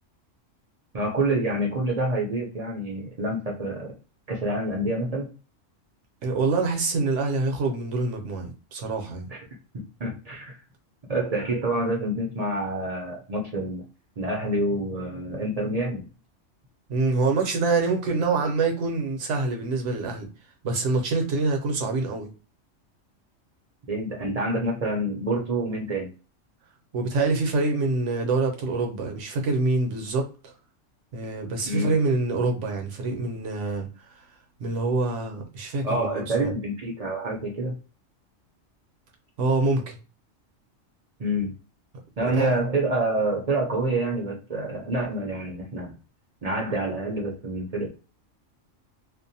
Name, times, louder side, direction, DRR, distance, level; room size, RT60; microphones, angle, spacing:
voice 1, 0.9-3.9 4.3-5.3 9.3-9.4 9.7-10.6 11.1-13.8 14.2-16.0 23.9-26.1 31.7-31.9 35.8-37.7 41.2-41.5 42.2-45.9 46.4-47.9, right 1 dB, 45° right, 0.5 m, -27 dB
voice 2, 6.2-9.3 16.9-20.3 20.6-22.3 26.9-30.5 31.1-33.9 34.6-36.5 39.4-40.0 42.2-42.6, right 3 dB, 70° right, 1.0 m, -25 dB
2.5 x 2.1 x 2.7 m
omnidirectional pair, 1.3 m